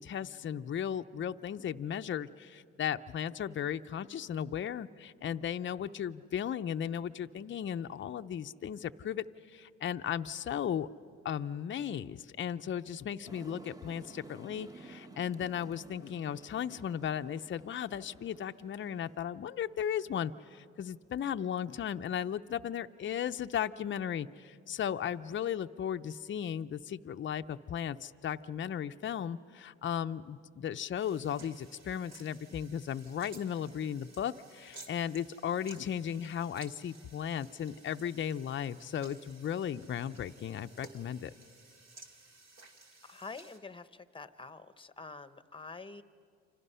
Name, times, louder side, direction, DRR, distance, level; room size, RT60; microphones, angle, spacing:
voice 1, 0.0-10.9 11.2-41.3, left 9 dB, 40° left, 9 dB, 0.6 m, -36 dB
sound 1, 13.3-19.3, right 2 dB, 10° right, 0.9 m, -53 dB
sound 2, 31.0-43.6, right 3 dB, 60° right, 2.6 m, -56 dB
voice 2, 43.0-46.0, left 4 dB, 15° left, 12 dB, 0.9 m, -47 dB
29.0 x 25.5 x 5.6 m, 2.3 s
cardioid pair, 90°, 30 cm